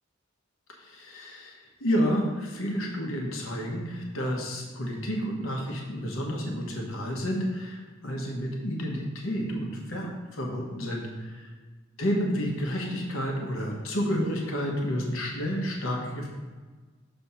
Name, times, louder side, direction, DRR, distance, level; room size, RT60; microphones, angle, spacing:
voice 1, 0.8-11.5 12.0-16.3, equal, 85° left, 0 dB, 1.1 m, -30 dB
7.1 x 3.4 x 5.6 m, 1.4 s
head